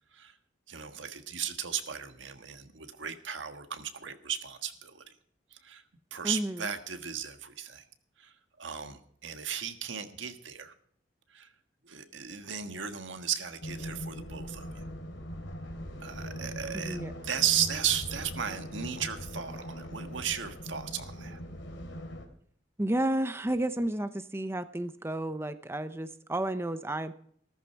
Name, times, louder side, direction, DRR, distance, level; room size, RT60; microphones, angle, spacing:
voice 1, 0.7-5.0 5.5-5.8 6.1-7.8 8.2-10.7 11.3-11.5 11.8-14.8 16.0-21.4, right 9 dB, 80° right, 8 dB, 1.5 m, -35 dB
voice 2, 6.2-6.7 16.7-17.1 22.8-27.1, right 1 dB, 15° right, 11 dB, 0.6 m, -31 dB
sound 1, 13.6-22.3, equal, 75° left, 3.2 m, -41 dB
14.5 x 14.0 x 4.6 m, 0.62 s
head